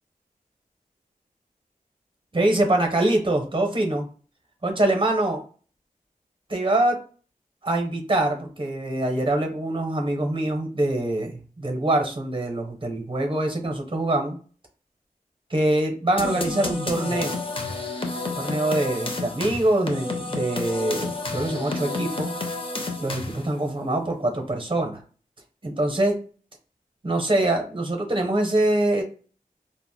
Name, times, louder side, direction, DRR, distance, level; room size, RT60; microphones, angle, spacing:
voice 1, 2.3-4.1 4.6-5.4 6.5-7.0 7.6-14.4 15.5-17.4 18.3-22.4 23.0-25.0 25.6-26.2 27.0-29.0, right 1 dB, 35° right, 3 dB, 0.7 m, -24 dB
sound 1, 16.2-23.6, left 3 dB, 35° left, 0.6 m, -30 dB
3.4 x 2.1 x 2.2 m, 0.40 s
wide cardioid pair, 60°, 15 cm